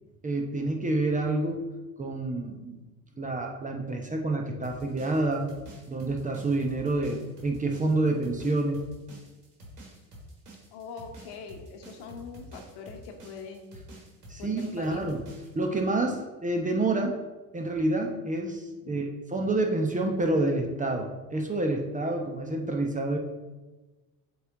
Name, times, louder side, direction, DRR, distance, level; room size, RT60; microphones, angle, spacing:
voice 1, 0.2-1.6 2.0-2.9 3.2-5.5 5.9-8.8 14.3-15.2 15.5-17.2 17.5-19.0 19.3-23.2, right 2 dB, 15° right, 2 dB, 0.7 m, -28 dB
sound 1, 4.6-15.5, right 1 dB, 85° right, 1.4 m, -48 dB
voice 2, 10.7-13.7 14.4-15.3 18.8-19.0, left 5 dB, 55° left, 4 dB, 1.1 m, -43 dB
8.0 x 3.2 x 3.7 m, 1.2 s
hypercardioid pair, 65°, 46 cm